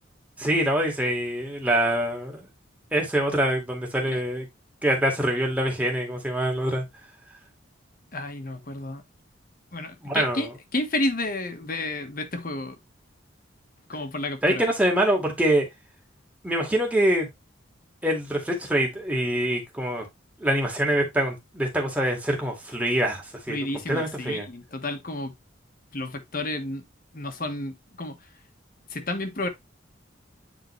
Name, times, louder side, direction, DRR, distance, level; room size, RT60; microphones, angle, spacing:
voice 1, 0.4-2.5 2.9-4.5 4.8-6.9 10.0-10.5 14.4-15.7 16.4-17.3 18.0-20.1 20.4-24.5, right 1 dB, 5° right, 2.0 m, -25 dB
voice 2, 8.1-9.0 9.7-12.8 13.9-14.7 23.5-25.3 25.9-26.8 27.1-28.2 28.9-29.5, left 2 dB, 45° left, 1.3 m, -31 dB
9.2 x 3.8 x 3.2 m
head